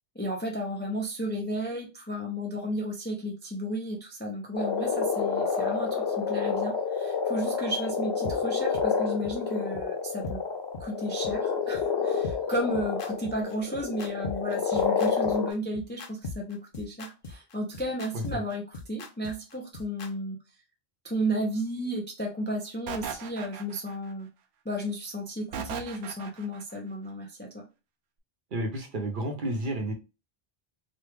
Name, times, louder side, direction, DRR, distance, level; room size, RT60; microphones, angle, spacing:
voice 1, 0.1-10.4 10.8-20.4 21.0-24.3 24.6-27.7, equal, 15° left, 1 dB, 0.4 m, -33 dB
sound 1, 4.5-15.5, left 6 dB, 80° left, 1.0 m, -28 dB
sound 2, 8.2-8.3 8.7-8.8 9.2-9.3 9.7-9.8 10.2-10.4 10.7-10.8 11.2-11.3 11.7-11.8 12.2-20.1, left 3 dB, 60° left, 0.8 m, -39 dB
sound 3, 22.9-24.1 25.5-26.6, right 7 dB, 85° right, 0.9 m, -37 dB
voice 2, 28.5-29.9, right 1 dB, 55° right, 3 dB, 0.9 m, -31 dB
3.1 x 2.3 x 3.3 m, 0.28 s
omnidirectional pair, 1.1 m